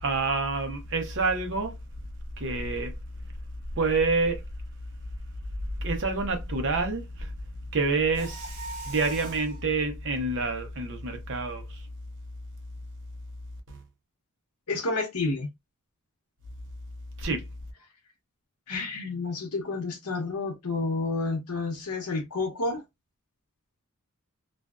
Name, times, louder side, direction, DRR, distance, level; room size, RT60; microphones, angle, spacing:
voice 1, 0.0-1.8 2.4-2.9 3.8-4.4 5.8-7.3 7.7-8.5 8.9-11.8 13.7-13.8 17.2-17.5, right 3 dB, 55° right, 0.7 m, -27 dB
Mechanisms, 8.1-9.6, right 3 dB, 35° right, 1.0 m, -40 dB
voice 2, 14.7-15.5 18.7-22.8, left 3 dB, 80° left, 0.8 m, -30 dB
2.5 x 2.2 x 2.3 m
head